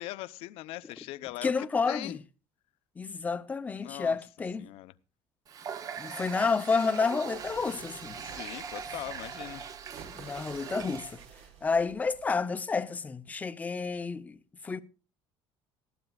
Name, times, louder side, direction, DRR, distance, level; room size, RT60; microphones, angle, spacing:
voice 1, 0.0-2.2 3.8-4.2 4.6-4.9 8.2-9.7, left 17 dB, 70° left, 0.8 m, -41 dB
voice 2, 1.4-2.2 3.0-4.7 6.0-8.2 10.1-11.2 11.6-14.4 14.6-14.8, left 4 dB, 15° left, 0.7 m, -30 dB
Water tap faucet, 5.5-11.3, right 7 dB, 35° right, 0.8 m, -41 dB
sound 1, 7.3-12.3, right 6 dB, 80° right, 3.5 m, -51 dB
20.0 x 15.0 x 2.4 m
cardioid pair, 170°, 10 cm